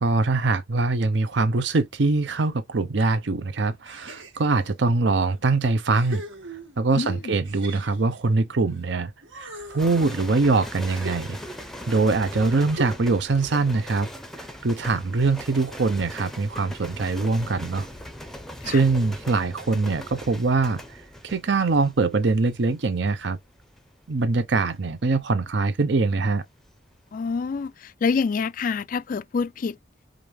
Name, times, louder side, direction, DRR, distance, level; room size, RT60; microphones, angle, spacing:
voice 1, 0.0-6.2 6.8-11.4 11.9-14.1 14.6-17.9 18.6-23.4 24.1-26.4, right 3 dB, 65° right, 0.6 m, -23 dB
sound 1, 3.8-4.7 5.3-5.4 5.9-6.9 7.4-8.9 9.2-11.7 12.7-13.3, right 1 dB, 80° right, 1.7 m, -40 dB
voice 2, 7.0-7.4 18.6-18.8 27.1-29.8, left 5 dB, 45° left, 0.3 m, -27 dB
sound 2, 9.8-27.0 27.3-27.7, equal, ahead, 0.6 m, -40 dB
5.1 x 2.4 x 3.1 m
head